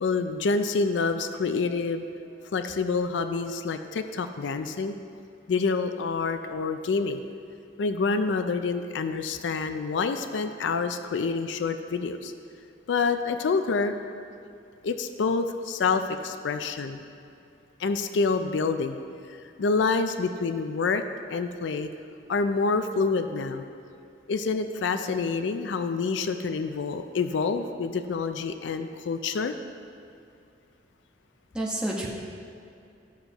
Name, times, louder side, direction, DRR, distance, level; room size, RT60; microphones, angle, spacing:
voice 1, 0.0-2.0 2.5-4.9 5.5-7.2 7.8-12.3 12.9-13.9 14.8-17.0 17.8-19.0 19.3-21.0 21.3-21.9 22.3-23.6 24.3-29.6, left 4 dB, 80° left, 8 dB, 0.4 m, -27 dB
voice 2, 31.5-32.1, right 1 dB, 5° right, -5 dB, 1.2 m, -30 dB
12.5 x 6.9 x 3.0 m, 2.6 s
head